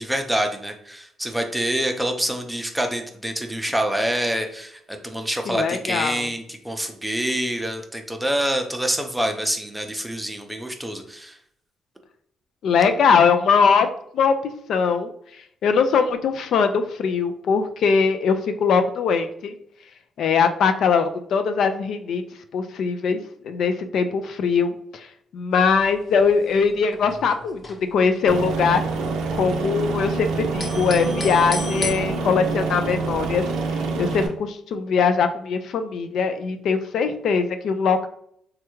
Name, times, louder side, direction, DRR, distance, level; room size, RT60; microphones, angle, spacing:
voice 1, 0.0-11.4, right 1 dB, 5° right, 4 dB, 0.5 m, -26 dB
voice 2, 5.5-6.3 12.6-13.9 14.1-14.4 14.7-15.1 15.6-19.5 20.2-22.2 22.5-25.1 25.3-27.6 27.9-33.4 34.0-38.1, left 5 dB, 70° left, 8 dB, 0.3 m, -21 dB
sound 1, 25.5-26.0 26.2-26.3 26.5-28.2 28.5-30.1 30.4-31.9, left 2 dB, 30° left, 0.8 m, -34 dB
Aircraft, 28.3-34.3, right 3 dB, 90° right, 0.4 m, -26 dB
3.3 x 2.3 x 3.0 m, 0.67 s
cardioid pair, 90°, 0 cm